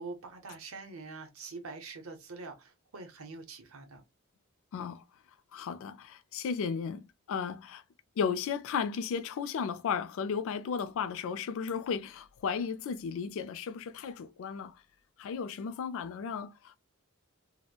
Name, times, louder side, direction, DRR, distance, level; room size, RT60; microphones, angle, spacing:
voice 1, 0.0-4.0, right 3 dB, 70° right, 0.7 m, -44 dB
voice 2, 4.7-5.0 5.5-7.8 8.2-14.8 15.2-16.8, left 6 dB, 65° left, 0.3 m, -34 dB
2.9 x 2.1 x 2.3 m
head